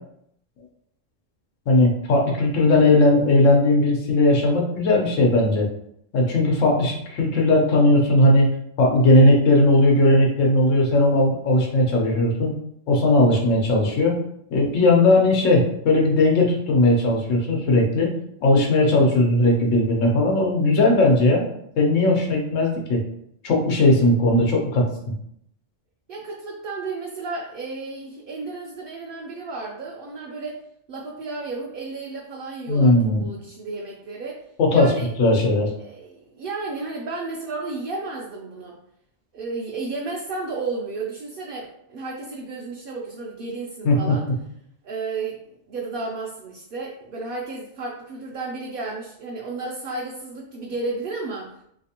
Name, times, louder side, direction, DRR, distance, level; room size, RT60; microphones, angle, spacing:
voice 1, 1.7-5.7 6.1-8.5 8.8-12.5 12.9-14.2 14.5-18.1 18.4-21.4 21.8-23.0 23.4-24.9 32.7-33.2 34.6-35.7 43.8-44.2, left 2 dB, 90° left, 0 dB, 1.2 m, -18 dB
voice 2, 26.1-30.6 30.9-34.4 34.7-35.1 35.8-38.8 39.3-44.2 44.8-51.5, right 3 dB, 60° right, -3 dB, 0.6 m, -33 dB
3.2 x 2.9 x 2.8 m, 0.72 s
omnidirectional pair, 1.3 m